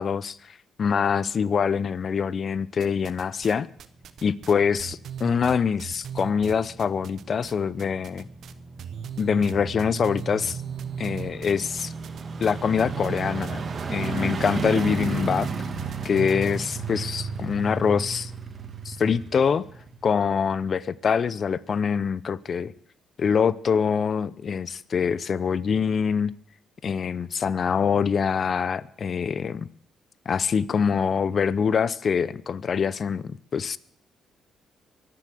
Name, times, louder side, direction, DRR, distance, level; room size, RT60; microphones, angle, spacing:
voice 1, 0.0-3.7 4.2-8.2 9.2-10.6 11.0-11.9 12.4-13.6 13.9-15.5 16.0-18.3 18.8-19.6 20.0-22.7 23.2-26.3 26.8-29.7 30.3-33.8, left 6 dB, 50° left, 19 dB, 0.7 m, -24 dB
sound 1, 2.8-3.5 3.8-7.5 7.8-8.5 8.8-16.6, right 9 dB, 65° right, 1.0 m, -37 dB
sound 2, 4.0-20.5 20.9-21.0, right 4 dB, 45° right, 2.2 m, -35 dB
23.0 x 7.7 x 7.7 m, 0.64 s
cardioid pair, 90°, 0 cm